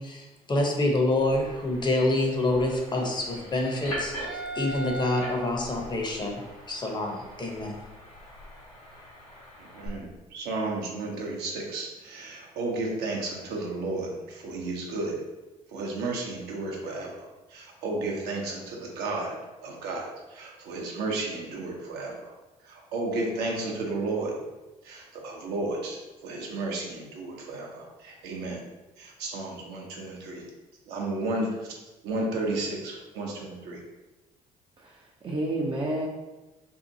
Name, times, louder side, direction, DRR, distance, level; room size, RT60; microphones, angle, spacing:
voice 1, 0.0-6.4 6.7-7.8, left 2 dB, 25° left, 0 dB, 0.7 m, -27 dB
sound 1, 1.2-9.9, right 1 dB, 85° left, 1.0 m, -40 dB
voice 2, 9.6-15.2 15.7-22.3 22.6-24.4 24.8-28.6 29.0-30.4 30.9-31.7 32.0-33.8, right 2 dB, 65° right, -1 dB, 0.7 m, -33 dB
voice 3, 34.8-36.1, right 1 dB, 30° right, -2 dB, 0.5 m, -30 dB
2.7 x 2.4 x 2.6 m, 1.1 s
hypercardioid pair, 50°, 18 cm